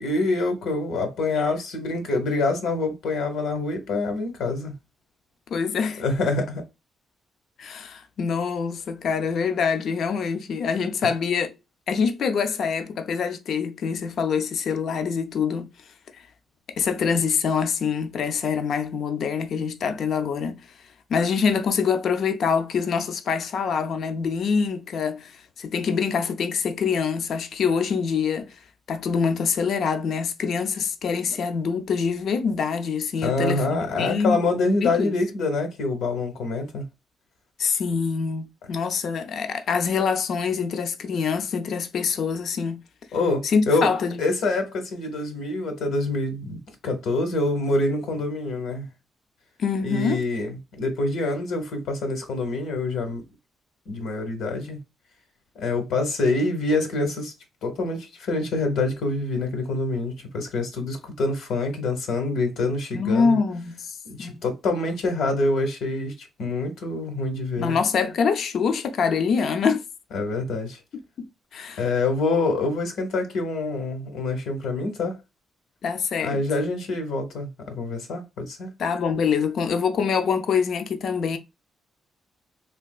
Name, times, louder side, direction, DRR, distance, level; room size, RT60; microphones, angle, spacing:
voice 1, 0.0-4.7 6.0-6.6 33.2-36.8 43.1-43.9 44.2-48.9 49.8-53.2 53.9-54.8 55.6-57.3 57.6-63.4 64.0-66.1 66.4-67.8 70.1-70.8 71.8-75.2 76.2-78.7, left 2 dB, 85° left, 1.0 m, -26 dB
voice 2, 5.5-6.0 7.6-11.6 11.9-15.7 16.8-20.6 21.1-28.6 28.9-34.4 34.8-35.1 37.6-42.8 43.4-44.2 49.6-50.3 62.9-64.4 67.6-69.8 71.2-71.3 71.5-71.9 75.8-76.4 78.8-81.4, left 6 dB, 60° left, 0.5 m, -25 dB
3.4 x 2.8 x 2.3 m
cardioid pair, 140°, 0 cm